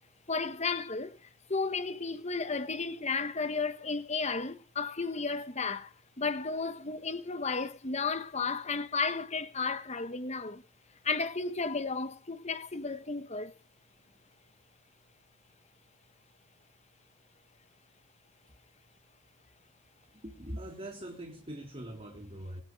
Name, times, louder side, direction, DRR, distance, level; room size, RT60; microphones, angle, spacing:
voice 1, 0.3-10.6 11.0-13.5, left 4 dB, 35° left, 1.4 m, -33 dB
voice 2, 20.2-22.6, right 1 dB, 30° right, 3.3 m, -42 dB
26.0 x 9.5 x 5.1 m
head